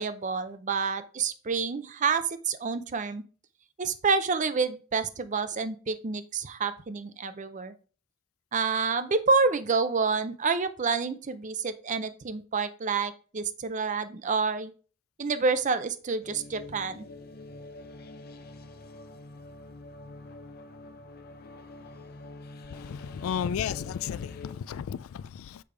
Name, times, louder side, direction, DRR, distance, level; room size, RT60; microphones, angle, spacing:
voice 1, 0.0-3.2 3.8-7.7 8.5-14.7 15.2-17.0, right 4 dB, 35° right, 0.5 m, -28 dB
sound 1, 16.2-24.5, left 2 dB, 50° left, 0.7 m, -46 dB
voice 2, 22.7-25.6, left 8 dB, 90° left, 0.3 m, -33 dB
6.8 x 5.1 x 3.4 m
head